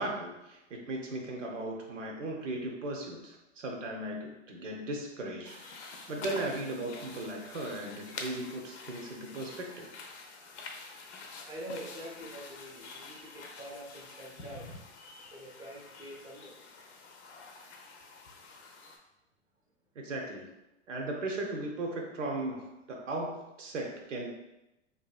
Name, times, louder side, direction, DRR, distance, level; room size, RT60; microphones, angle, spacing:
voice 1, 0.0-9.9 19.9-20.5 20.9-24.3, right 2 dB, 80° right, 0 dB, 0.7 m, -37 dB
sound 1, 5.4-19.0, left 4 dB, 65° left, 0.6 m, -47 dB
voice 2, 11.5-14.7 15.3-16.5, right 1 dB, 10° right, -4 dB, 0.6 m, -45 dB
2.6 x 2.5 x 2.3 m, 0.92 s
hypercardioid pair, 105°, 37 cm